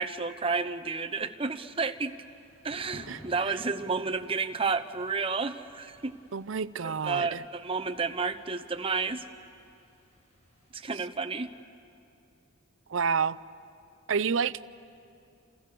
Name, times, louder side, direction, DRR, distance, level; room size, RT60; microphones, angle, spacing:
voice 1, 0.0-2.1 2.6-6.2 6.8-9.2 10.7-11.5, right 4 dB, 25° right, 0.8 m, -31 dB
Thunder / Rain, 1.9-10.9, equal, 30° left, 7.5 m, -55 dB
voice 2, 6.3-7.4 12.9-13.4 14.1-14.6, right 6 dB, 65° right, 0.5 m, -29 dB
29.5 x 28.5 x 6.8 m
head